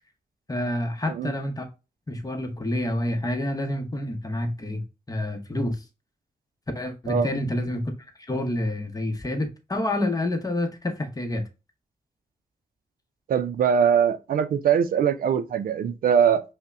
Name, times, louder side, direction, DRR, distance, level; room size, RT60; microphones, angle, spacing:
voice 1, 0.5-1.7 2.1-5.8 6.7-7.9 8.3-11.4, left 1 dB, 25° left, 0.8 m, -28 dB
voice 2, 13.3-16.4, right 8 dB, 85° right, 0.4 m, -22 dB
5.3 x 2.1 x 2.5 m
wide cardioid pair, 90°, 15 cm